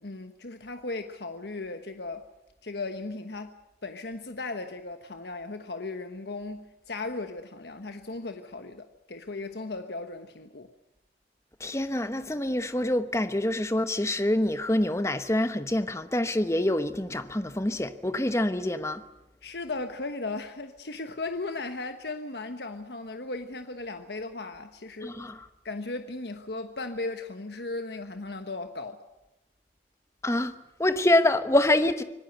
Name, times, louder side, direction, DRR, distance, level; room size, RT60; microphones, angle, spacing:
voice 1, 0.0-2.3 2.6-3.5 3.8-10.7 19.4-25.2 25.6-29.0, left 3 dB, 70° left, 7 dB, 1.3 m, -36 dB
voice 2, 11.6-19.0 25.0-25.5 30.2-30.5 30.8-32.0, left 1 dB, 15° left, 10 dB, 1.0 m, -26 dB
25.5 x 19.0 x 8.0 m, 0.95 s
head